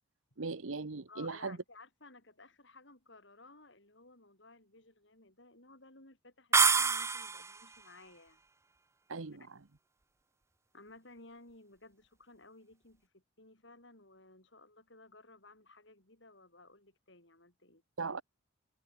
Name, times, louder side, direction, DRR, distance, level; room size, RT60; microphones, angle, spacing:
voice 1, 0.4-1.6 9.1-9.6 18.0-18.2, right 4 dB, 80° right, 1.0 m, -39 dB
voice 2, 1.1-8.4 10.7-17.8, left 2 dB, 60° left, 5.3 m, -57 dB
sound 1, 6.5-7.6, right 5 dB, 15° right, 0.6 m, -26 dB
head